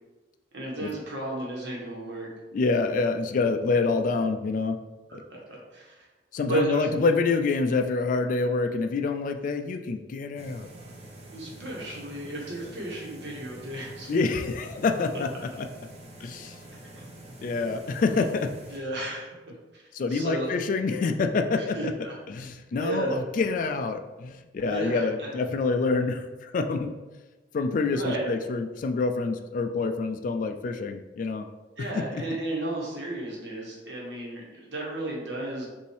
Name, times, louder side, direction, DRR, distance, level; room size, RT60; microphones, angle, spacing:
voice 1, 0.5-2.3 5.3-5.4 5.7-6.1 6.5-6.9 11.3-14.1 16.9-17.0 18.7-19.8 20.1-20.5 21.6-22.1 22.8-23.2 24.6-25.3 27.9-28.3 31.8-35.7, right 2 dB, 70° right, -3 dB, 1.3 m, -33 dB
voice 2, 2.5-4.8 5.1-5.2 6.3-10.7 14.1-15.7 16.2-16.6 17.4-18.5 19.9-21.9 22.3-26.9 27.5-31.5 31.9-32.2, left 4 dB, 45° left, 6 dB, 0.3 m, -27 dB
sound 1, 10.4-18.8, right 1 dB, 35° right, 0.7 m, -46 dB
5.4 x 2.6 x 3.2 m, 1.2 s
head